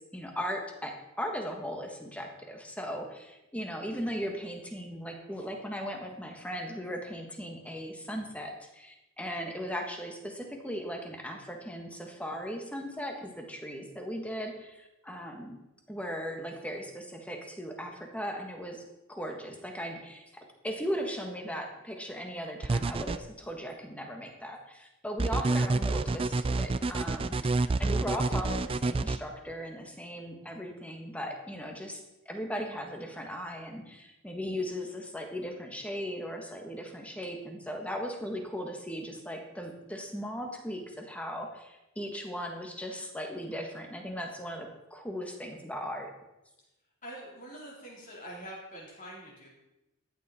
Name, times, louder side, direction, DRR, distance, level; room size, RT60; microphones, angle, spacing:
voice 1, 0.1-15.6 15.9-18.8 19.1-32.0 32.2-46.1, equal, 5° left, 3 dB, 1.5 m, -38 dB
sound 1, 22.6-23.2 25.2-29.2, right 3 dB, 25° right, 0.3 m, -28 dB
voice 2, 47.0-49.5, right 1 dB, 35° left, -4 dB, 3.8 m, -45 dB
13.5 x 9.2 x 4.3 m, 0.98 s
head